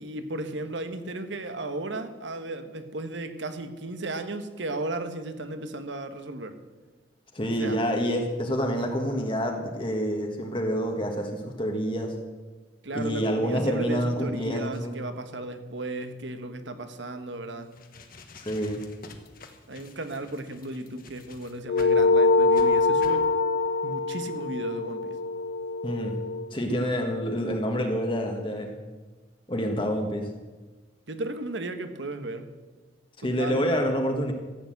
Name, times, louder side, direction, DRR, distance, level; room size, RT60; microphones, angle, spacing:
voice 1, 0.0-6.6 7.6-7.8 12.8-17.7 19.7-23.2 23.8-25.2 31.1-32.5 33.2-33.7, right 2 dB, 75° right, 9 dB, 1.2 m, -35 dB
voice 2, 7.3-12.2 12.9-15.0 18.3-18.8 25.8-26.2 26.5-28.8 29.5-30.3 33.2-34.3, equal, 25° left, 3 dB, 1.3 m, -27 dB
sound 1, 17.6-22.0 22.5-22.7 23.0-23.2, left 3 dB, 50° left, 1.4 m, -47 dB
sound 2, 21.7-26.5, left 3 dB, 65° left, 0.5 m, -24 dB
14.0 x 8.3 x 7.8 m, 1.3 s
head